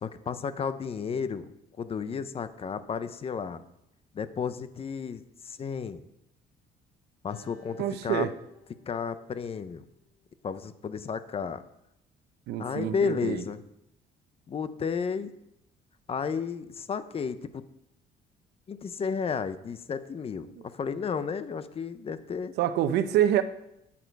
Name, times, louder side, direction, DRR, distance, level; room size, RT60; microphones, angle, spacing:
voice 1, 0.0-1.5 1.8-3.6 4.1-6.0 7.2-8.3 8.9-9.8 10.4-11.6 12.6-13.6 14.5-15.3 16.1-17.6 18.7-20.5 20.7-22.5, left 6 dB, 35° left, 13 dB, 0.7 m, -32 dB
Acoustic guitar, 7.3-10.6, left 3 dB, 60° left, 4.7 m, -58 dB
voice 2, 7.8-8.3 12.5-13.4 20.6-20.7 22.6-23.4, right 11 dB, 80° right, 11 dB, 0.8 m, -26 dB
11.0 x 8.7 x 4.7 m, 0.82 s
cardioid pair, 110°, 17 cm